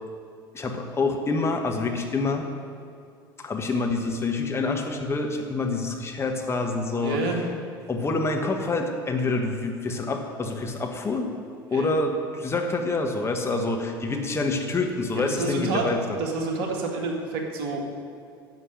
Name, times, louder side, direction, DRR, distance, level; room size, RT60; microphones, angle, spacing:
voice 1, 0.5-2.5 3.4-7.3 7.9-11.4 11.7-16.2, left 3 dB, 20° left, 3 dB, 1.3 m, -27 dB
voice 2, 6.9-7.4 11.7-11.9 15.1-17.8, right 3 dB, 50° right, 1 dB, 1.9 m, -29 dB
10.5 x 7.3 x 8.5 m, 2.3 s
figure-of-eight pair, 70°, 12 cm